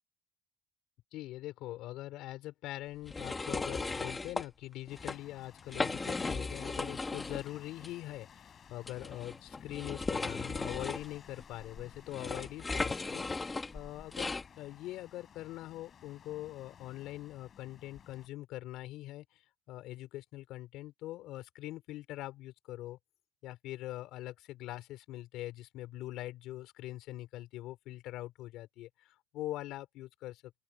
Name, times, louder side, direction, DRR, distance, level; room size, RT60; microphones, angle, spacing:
voice 1, 1.1-13.3 13.7-19.4 19.7-23.0 23.4-30.4, left 15 dB, 80° left, 3.7 m, -43 dB
sound 1, 3.1-4.5 4.9-5.2 5.6-7.5 7.8-7.9 8.8-14.5, left 3 dB, 15° left, 1.1 m, -36 dB
sound 2, 4.9-18.3, left 8 dB, 35° left, 5.6 m, -57 dB
open air
cardioid pair, 175°, 0 cm